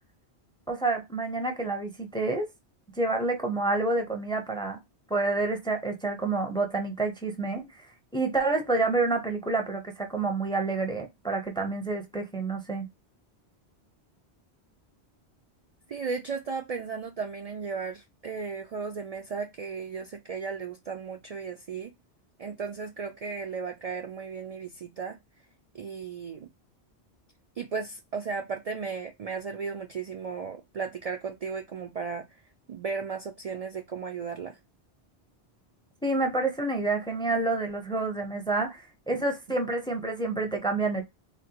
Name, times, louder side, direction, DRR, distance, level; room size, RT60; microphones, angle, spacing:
voice 1, 0.7-2.5 3.0-4.8 5.1-7.6 8.1-12.9 36.0-41.0, right 3 dB, 5° left, 0.5 m, -28 dB
voice 2, 15.9-21.9 22.4-25.2 25.7-26.5 27.6-32.3 32.7-34.6, right 5 dB, 55° right, 0.4 m, -35 dB
3.6 x 2.1 x 2.8 m
omnidirectional pair, 1.1 m